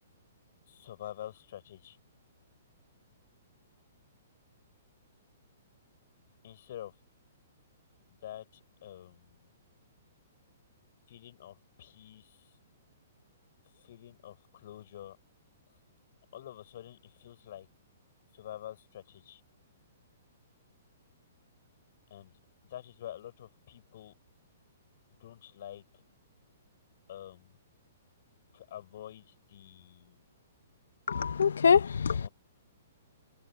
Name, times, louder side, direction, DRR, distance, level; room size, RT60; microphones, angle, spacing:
voice 1, 0.7-2.0 6.4-7.0 8.1-9.5 11.1-12.5 13.7-15.2 16.3-17.7 18.3-19.4 22.1-24.1 25.2-26.0 27.1-27.6 28.5-30.2 32.1-32.3, left 12 dB, 60° left, 6.3 m, -47 dB
voice 2, 31.1-32.3, left 6 dB, 75° left, 0.8 m, -24 dB
hypercardioid pair, 125°, 0 cm